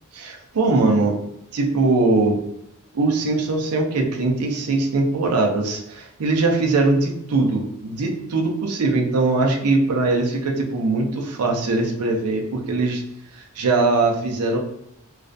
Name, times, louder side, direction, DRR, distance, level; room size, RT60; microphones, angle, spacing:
voice 1, 0.1-1.2 1.5-2.4 2.9-13.0 13.3-14.6, right 3 dB, 90° right, 1 dB, 0.5 m, -21 dB
2.4 x 2.1 x 2.5 m, 0.78 s
head